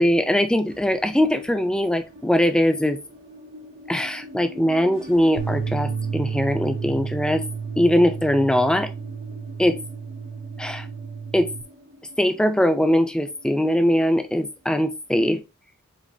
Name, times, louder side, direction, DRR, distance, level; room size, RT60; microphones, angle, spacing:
voice 1, 0.0-3.0 3.9-7.4 7.8-8.9 9.6-9.8 10.6-10.9 11.3-11.5 12.2-15.4, equal, 5° left, 8 dB, 0.4 m, -21 dB
sound 1, 0.7-15.3, equal, 65° right, 1.4 m, -45 dB
sound 2, 5.4-11.6, right 6 dB, 85° right, 0.5 m, -31 dB
7.0 x 2.5 x 2.6 m, 0.28 s
head